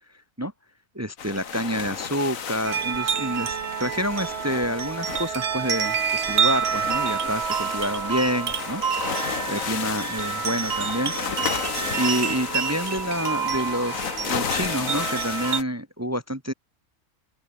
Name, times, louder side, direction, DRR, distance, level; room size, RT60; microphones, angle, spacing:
voice 1, 1.0-8.8 9.1-11.1 12.0-16.5, equal, 10° right, 2.1 m, -28 dB
sound 1, 1.2-15.6, left 7 dB, 65° left, 1.8 m, -33 dB
sound 2, 2.6-15.6, right 7 dB, 50° right, 1.2 m, -28 dB
open air
omnidirectional pair, 1.6 m